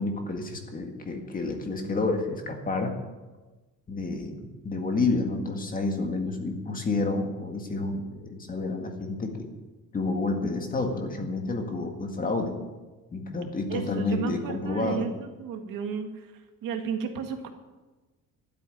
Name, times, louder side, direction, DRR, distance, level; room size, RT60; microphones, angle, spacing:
voice 1, 0.0-3.0 3.9-9.5 9.9-12.6 13.1-15.1, left 3 dB, 25° left, 3 dB, 1.9 m, -29 dB
voice 2, 13.7-16.3 16.6-17.5, right 6 dB, 80° right, 5 dB, 1.9 m, -33 dB
12.0 x 8.5 x 10.0 m, 1.2 s
cardioid pair, 170°, 33 cm